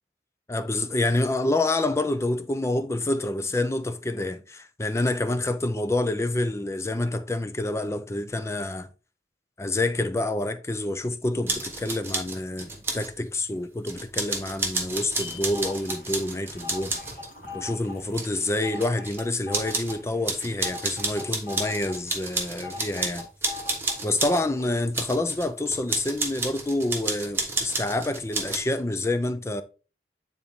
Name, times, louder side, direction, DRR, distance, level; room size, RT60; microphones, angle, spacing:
voice 1, 0.5-8.9 9.6-12.7 12.9-16.9 17.5-23.6 24.0-29.6, left 2 dB, 15° left, 0.4 m, -27 dB
sound 1, 11.5-13.1 13.9-17.3 18.0-19.2 19.5-20.0 20.2-24.4 24.9-28.6, right 3 dB, 15° right, 1.2 m, -31 dB
sound 2, 15.5-24.2 24.6-24.7, left 3 dB, 50° left, 2.8 m, -41 dB
9.6 x 4.0 x 3.5 m
head